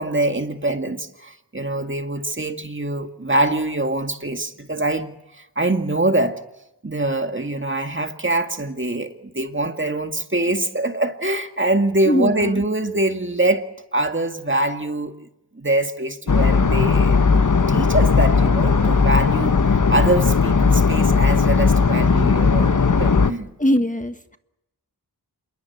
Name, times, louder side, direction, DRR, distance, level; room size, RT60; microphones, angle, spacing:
voice 1, 0.0-6.4 6.8-13.7 13.9-15.3 15.5-23.5, right 1 dB, 30° right, 2.1 m, -24 dB
voice 2, 12.0-12.6 23.6-24.4, equal, 20° left, 1.4 m, -21 dB
sound 1, 16.3-23.3, left 5 dB, 50° left, 1.2 m, -17 dB
27.5 x 21.5 x 8.5 m
cardioid pair, 40°, 40 cm